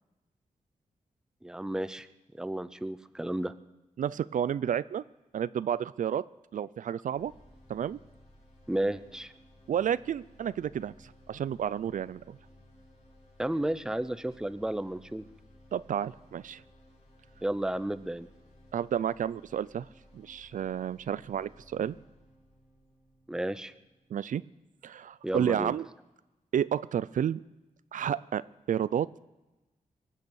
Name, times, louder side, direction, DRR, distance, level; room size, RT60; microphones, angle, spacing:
voice 1, 1.4-2.1 2.3-3.5 8.7-9.3 13.4-15.2 17.4-18.3 23.3-23.7 25.2-25.7, right 1 dB, 5° right, 14 dB, 0.5 m, -32 dB
voice 2, 4.0-5.0 5.3-6.2 6.5-7.3 7.7-8.0 9.7-12.4 15.7-16.6 18.7-19.9 20.1-22.0 24.1-24.4 24.8-25.9 26.5-27.4 27.9-29.1, right 9 dB, 70° right, 18 dB, 0.4 m, -31 dB
sound 1, 7.1-25.1, left 1 dB, 55° left, 4.5 m, -58 dB
23.0 x 8.1 x 7.0 m, 1.1 s
wide cardioid pair, 120°, 14 cm